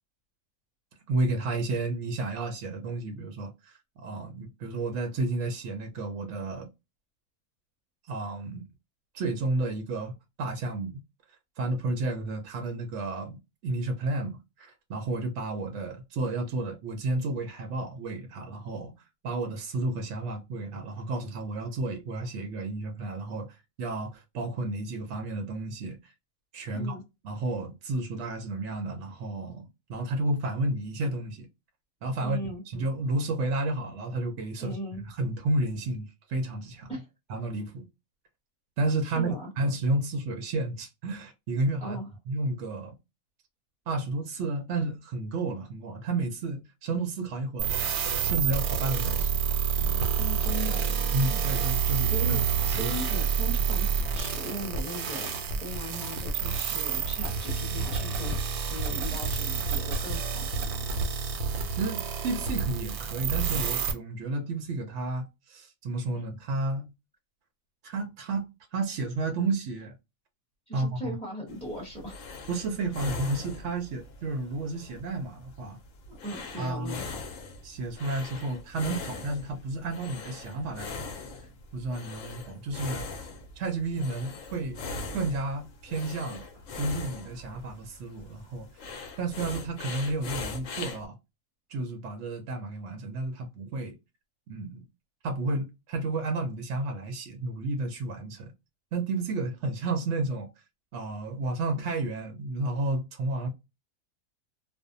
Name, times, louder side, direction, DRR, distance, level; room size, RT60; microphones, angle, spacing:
voice 1, 1.1-6.7 8.1-8.7 9.1-11.0 11.6-13.4 13.6-18.9 19.2-26.1 26.5-26.9 27.2-31.5 32.0-32.4 32.7-34.8 35.0-36.9 37.3-37.9 38.8-42.0 42.3-42.9 43.9-47.7 48.2-49.3 49.8-50.0 51.1-52.9 61.7-66.9 67.8-69.9 70.7-71.2 72.5-75.8 76.6-77.0 77.6-81.2 81.7-84.8 85.1-86.4 86.8-88.7 89.2-91.2 91.7-93.9 94.5-94.8 95.2-98.5 98.9-100.5 100.9-103.5, right 2 dB, 65° right, 0.8 m, -32 dB
voice 2, 26.7-27.0 32.2-32.6 34.6-35.0 36.9-37.1 39.0-39.5 41.8-42.1 50.2-50.9 51.9-52.4 52.6-58.4 58.7-61.0 70.7-72.2 76.1-77.2, equal, 5° left, 0.6 m, -38 dB
sound 1, 47.6-63.9, right 6 dB, 85° right, 1.1 m, -28 dB
sound 2, 71.5-91.1, left 4 dB, 65° left, 0.9 m, -41 dB
2.5 x 2.1 x 2.5 m
omnidirectional pair, 1.6 m